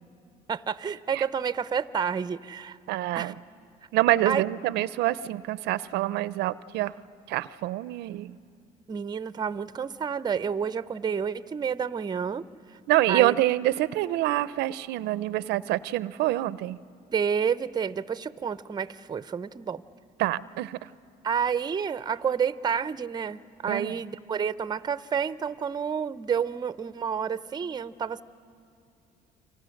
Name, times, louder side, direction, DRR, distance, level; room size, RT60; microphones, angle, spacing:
voice 1, 0.5-2.8 3.1-3.3 4.3-4.4 8.9-12.4 13.1-13.3 17.1-19.8 21.2-28.2, right 7 dB, 25° right, 15 dB, 0.6 m, -29 dB
voice 2, 2.9-3.3 3.9-6.9 7.3-8.4 12.9-16.8 20.2-20.8 23.7-24.0, right 15 dB, 85° right, 17 dB, 0.5 m, -26 dB
30.0 x 24.5 x 6.5 m, 2.6 s
cardioid pair, 110°, 17 cm